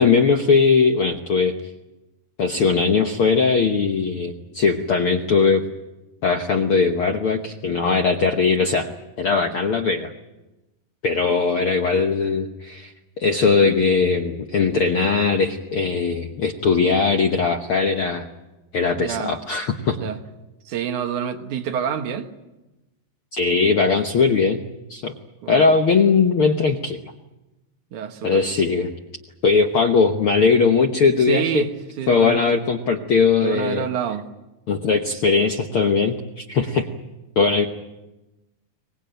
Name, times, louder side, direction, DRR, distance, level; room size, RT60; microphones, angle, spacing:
voice 1, 0.0-1.5 2.4-5.6 6.2-8.9 9.2-10.1 11.0-12.9 13.2-18.2 18.7-20.0 23.3-24.6 24.9-25.1 25.5-27.0 28.2-28.9 29.4-31.7 32.1-33.9 34.7-36.9 37.4-37.7, left 5 dB, 70° left, 1.2 m, -19 dB
voice 2, 19.0-19.3 19.9-20.2 20.7-22.3 25.4-25.7 27.9-28.4 31.3-31.7 32.0-32.6 33.4-34.3, right 9 dB, 65° right, 2.6 m, -27 dB
24.0 x 19.5 x 9.1 m
omnidirectional pair, 4.1 m